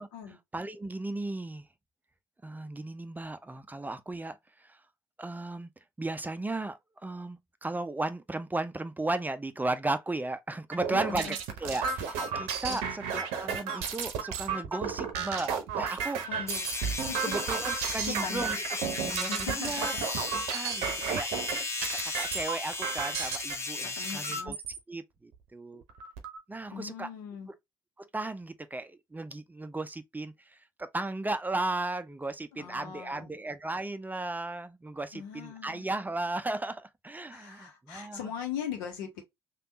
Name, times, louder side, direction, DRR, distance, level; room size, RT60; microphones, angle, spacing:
voice 1, 0.5-1.7 2.4-4.8 5.2-5.7 6.0-16.2 17.2-18.6 18.9-19.9 20.5-21.3 21.8-24.6 24.9-25.8 26.5-27.1 28.0-38.2, right 2 dB, 15° right, 0.5 m, -35 dB
sound 1, 10.7-23.6 24.2-24.8 25.3-25.4 25.7-26.4, right 6 dB, 70° right, 0.7 m, -33 dB
voice 2, 10.9-11.4 12.6-12.9 16.3-17.4 17.8-18.6 19.3-20.0 20.9-21.3 23.8-24.6 26.7-27.5 32.5-33.3 35.1-35.8 37.3-39.2, left 8 dB, 75° left, 0.9 m, -40 dB
sound 2, 16.5-24.4, left 3 dB, 25° left, 0.9 m, -35 dB
3.4 x 2.4 x 2.7 m
hypercardioid pair, 45°, 11 cm